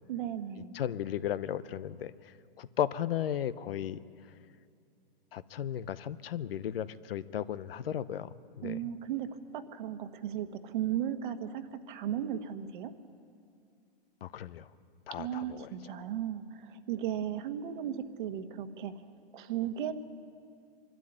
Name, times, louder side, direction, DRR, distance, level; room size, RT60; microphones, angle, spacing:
voice 1, 0.1-0.7 8.6-9.3 9.5-12.9 15.2-18.9 19.3-20.0, right 10 dB, 60° right, 9 dB, 1.4 m, -35 dB
voice 2, 0.7-2.1 2.6-4.0 5.3-8.8 14.2-14.7 15.1-15.7, left 10 dB, 75° left, 16 dB, 0.9 m, -35 dB
23.5 x 12.5 x 10.0 m, 2.4 s
hypercardioid pair, 140°, 29 cm